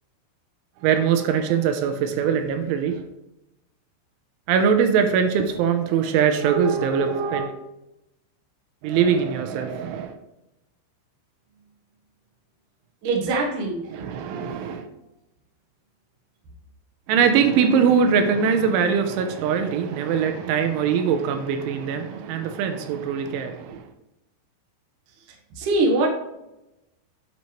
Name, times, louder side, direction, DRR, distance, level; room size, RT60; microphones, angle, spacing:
voice 1, 0.8-3.0 4.5-7.5 8.8-10.2 13.9-14.9 17.1-23.9, right 7 dB, 80° right, 7 dB, 3.2 m, -22 dB
voice 2, 13.0-14.0 25.3-26.1, right 2 dB, 65° right, 0 dB, 2.1 m, -23 dB
9.6 x 8.1 x 3.2 m, 0.93 s
omnidirectional pair, 5.5 m